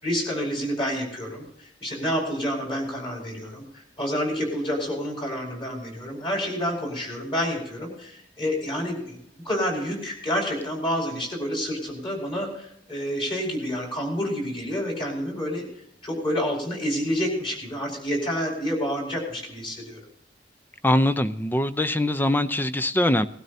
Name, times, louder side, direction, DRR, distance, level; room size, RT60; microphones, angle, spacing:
voice 1, 0.0-9.2 9.4-15.6 16.0-20.0, equal, 30° left, 0 dB, 5.3 m, -28 dB
voice 2, 20.8-23.3, left 1 dB, 10° left, 12 dB, 0.6 m, -22 dB
20.0 x 12.5 x 2.8 m, 0.73 s
head